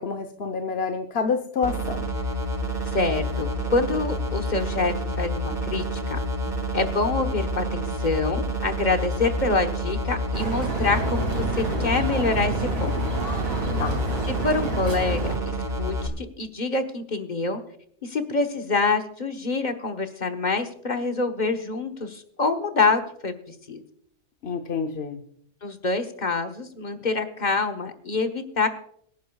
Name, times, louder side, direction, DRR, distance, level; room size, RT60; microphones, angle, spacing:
voice 1, 0.0-2.1 13.8-14.0 24.4-25.2, left 5 dB, 65° left, 5 dB, 1.0 m, -28 dB
sound 1, 1.6-16.1, right 1 dB, 40° right, 2.1 m, -28 dB
voice 2, 2.9-5.8 6.1-6.2 6.7-12.9 14.4-17.6 18.0-23.8 25.6-28.7, left 3 dB, 40° left, 6 dB, 1.2 m, -26 dB
sound 2, 10.3-15.4, right 2 dB, 65° right, 3.3 m, -29 dB
25.0 x 10.5 x 2.3 m, 0.68 s
omnidirectional pair, 1.2 m